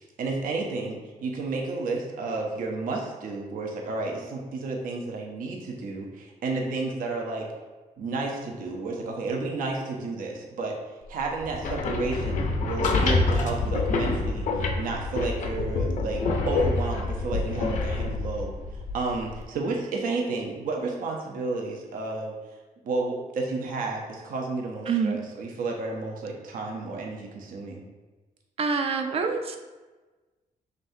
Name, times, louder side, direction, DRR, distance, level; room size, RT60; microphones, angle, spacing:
voice 1, 0.0-7.5 8.0-10.8 11.1-22.3 22.8-27.8, right 3 dB, 75° right, 0 dB, 0.8 m, -31 dB
sound 1, 11.4-19.4, left 3 dB, 65° left, 0.5 m, -27 dB
voice 2, 24.9-25.2 28.6-29.6, right 5 dB, 45° right, 5 dB, 0.4 m, -26 dB
5.3 x 3.3 x 2.7 m, 1.2 s
cardioid pair, 125°, 14 cm